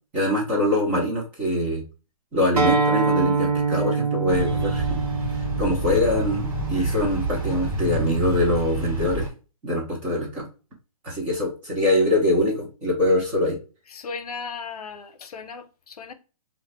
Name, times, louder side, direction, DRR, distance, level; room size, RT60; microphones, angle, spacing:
voice 1, 0.1-1.8 2.3-5.0 5.6-9.3 9.6-10.5 11.0-13.6, left 1 dB, 10° right, 0.3 m, -23 dB
Acoustic guitar, 2.6-7.8, right 4 dB, 90° right, 0.9 m, -25 dB
sound 1, 4.3-9.3, right 1 dB, 30° right, 1.4 m, -28 dB
voice 2, 13.9-16.1, left 5 dB, 80° left, 0.6 m, -36 dB
2.4 x 2.0 x 3.9 m
hypercardioid pair, 165°, 19 cm